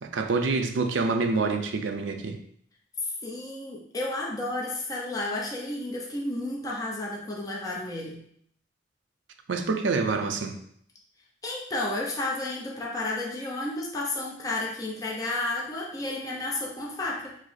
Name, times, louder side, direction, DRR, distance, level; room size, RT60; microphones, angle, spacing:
voice 1, 0.0-2.4 9.5-10.6, right 4 dB, 75° right, 6 dB, 0.5 m, -26 dB
voice 2, 3.0-8.2 11.4-17.4, left 2 dB, 20° left, -3 dB, 0.6 m, -32 dB
4.9 x 2.0 x 4.0 m, 0.65 s
head